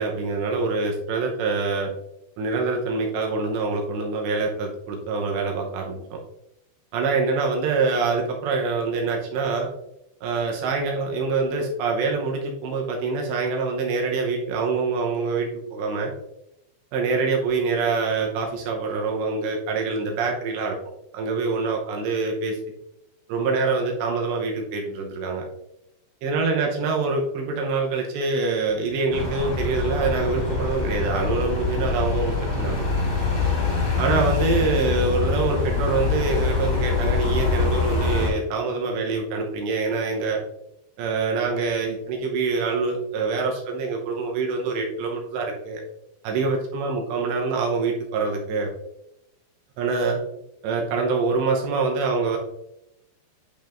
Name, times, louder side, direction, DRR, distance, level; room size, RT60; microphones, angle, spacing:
voice 1, 0.0-1.9 2.4-6.2 6.9-9.7 10.2-16.1 16.9-20.8 21.1-22.6 23.3-25.4 26.2-32.9 34.0-40.4 41.0-45.8 46.2-48.7 49.8-50.2 50.6-52.4, right 4 dB, 75° right, 1 dB, 2.8 m, -25 dB
sound 1, 29.1-38.3, left 4 dB, 40° left, 3.7 m, -24 dB
10.5 x 5.3 x 2.5 m, 0.84 s
omnidirectional pair, 5.7 m